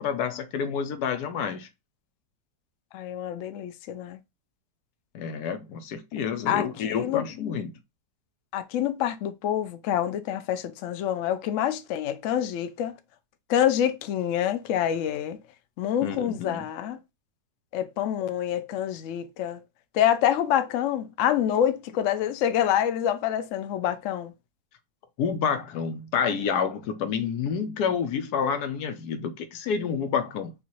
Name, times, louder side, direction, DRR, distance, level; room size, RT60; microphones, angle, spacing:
voice 1, 0.0-1.7 5.1-7.8 16.0-16.7 25.2-30.5, left 6 dB, 70° left, 1.1 m, -29 dB
voice 2, 2.9-4.2 6.5-6.7 6.9-7.2 8.5-12.9 13.5-15.4 15.8-17.0 17.7-19.6 19.9-24.3, left 10 dB, 85° left, 0.6 m, -26 dB
5.4 x 2.4 x 3.0 m
omnidirectional pair, 1.9 m